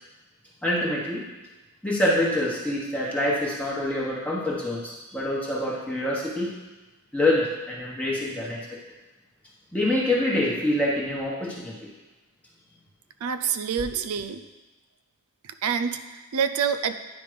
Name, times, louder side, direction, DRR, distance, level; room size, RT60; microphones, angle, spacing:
voice 1, 0.6-1.2 1.8-6.5 7.1-8.6 9.7-11.9, left 1 dB, 5° left, -5 dB, 1.1 m, -26 dB
voice 2, 13.2-14.4 15.4-16.9, right 7 dB, 75° right, 10 dB, 0.5 m, -27 dB
9.7 x 5.1 x 5.0 m, 1.1 s
head